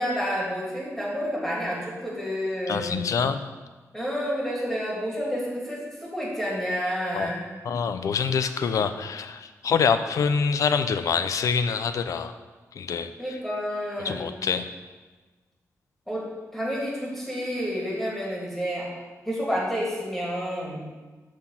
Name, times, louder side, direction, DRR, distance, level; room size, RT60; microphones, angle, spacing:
voice 1, 0.0-3.0 3.9-7.5 13.2-14.4 16.1-16.2 16.5-18.9 19.2-20.8, equal, 5° left, -5 dB, 2.8 m, -29 dB
voice 2, 2.7-3.4 7.1-7.3 7.6-12.3 12.8-13.4 14.0-14.7, left 6 dB, 70° left, 10 dB, 0.6 m, -25 dB
13.0 x 4.4 x 5.7 m, 1.3 s
wide cardioid pair, 165°, 6 cm